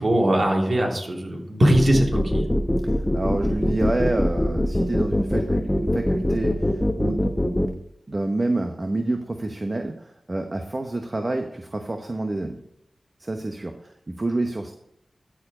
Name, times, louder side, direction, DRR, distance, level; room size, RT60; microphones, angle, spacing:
voice 1, 0.0-2.5, right 1 dB, 60° right, -1 dB, 3.1 m, -20 dB
sound 1, 1.7-7.7, left 1 dB, 15° left, 1.1 m, -22 dB
voice 2, 2.8-7.6 8.1-12.6 13.2-14.7, right 2 dB, 40° right, 4 dB, 1.0 m, -28 dB
13.5 x 4.8 x 5.0 m, 0.75 s
cardioid pair, 40°, 0 cm